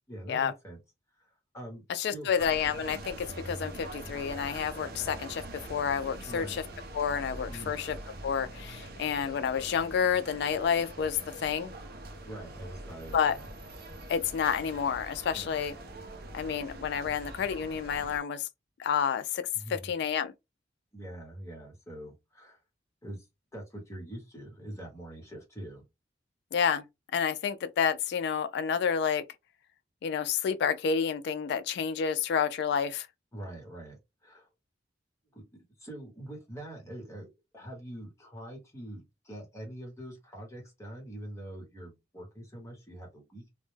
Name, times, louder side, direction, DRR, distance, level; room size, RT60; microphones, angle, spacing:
voice 1, 0.1-0.8 1.1-2.3 6.2-6.6 7.5-7.8 12.2-13.5 15.3-15.6 19.5-19.9 20.9-22.6 23.0-23.3 23.5-25.8 33.3-34.5 35.3-35.4 35.8-43.5, right 1 dB, 15° left, 1.0 m, -44 dB
voice 2, 1.9-6.5 6.9-8.0 8.2-11.7 13.1-13.4 14.1-15.7 16.3-18.5 18.8-20.3 26.5-26.8 27.1-29.2 30.0-33.1, left 7 dB, 65° left, 0.3 m, -29 dB
sound 1, 2.4-18.2, right 1 dB, 55° right, 0.5 m, -44 dB
2.2 x 2.1 x 3.1 m
head